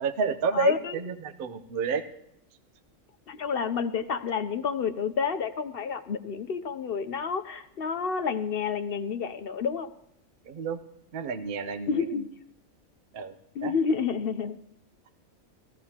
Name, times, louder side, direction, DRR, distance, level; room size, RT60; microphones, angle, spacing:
voice 1, 0.0-2.0 10.5-10.8 11.1-12.0 13.1-13.3 13.6-13.8, right 6 dB, 50° right, 9 dB, 0.8 m, -30 dB
voice 2, 0.5-0.9 3.3-9.9 11.9-12.3 13.6-14.6, left 6 dB, 55° left, 10 dB, 0.7 m, -29 dB
20.5 x 15.5 x 2.9 m, 0.80 s
omnidirectional pair, 1.4 m